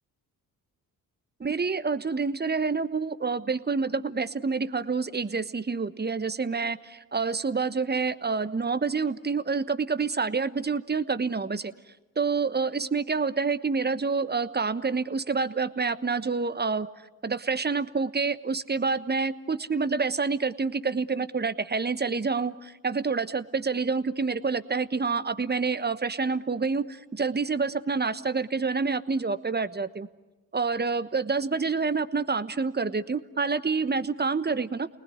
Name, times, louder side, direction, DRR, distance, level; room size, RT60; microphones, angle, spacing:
voice 1, 1.4-11.7 12.2-16.9 17.2-30.1 30.5-34.9, right 4 dB, 25° right, 13 dB, 1.2 m, -28 dB
29.5 x 19.5 x 9.6 m, 1.1 s
supercardioid pair, 45°, 40 cm